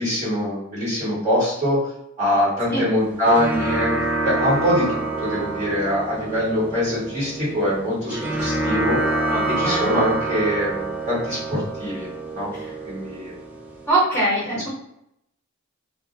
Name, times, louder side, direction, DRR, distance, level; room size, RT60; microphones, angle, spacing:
voice 1, 0.0-1.8 2.2-3.9 4.2-9.0 9.5-12.5 12.8-13.3, equal, 35° right, -8 dB, 1.3 m, -23 dB
sound 1, 2.9-13.9, right 2 dB, 5° right, 0.3 m, -27 dB
voice 2, 9.2-9.9 12.6-12.7 13.9-14.7, right 2 dB, 10° left, -8 dB, 1.0 m, -23 dB
2.3 x 2.2 x 2.7 m, 0.79 s
head